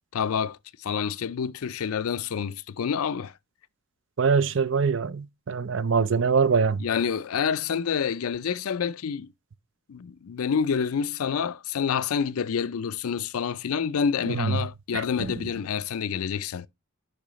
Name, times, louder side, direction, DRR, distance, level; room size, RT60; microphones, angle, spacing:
voice 1, 0.1-3.3 6.8-9.3 9.9-16.7, left 7 dB, 85° left, 0.4 m, -28 dB
voice 2, 4.2-6.8 14.3-14.6 14.9-15.3, right 5 dB, 60° right, 0.5 m, -24 dB
8.7 x 5.5 x 3.1 m
head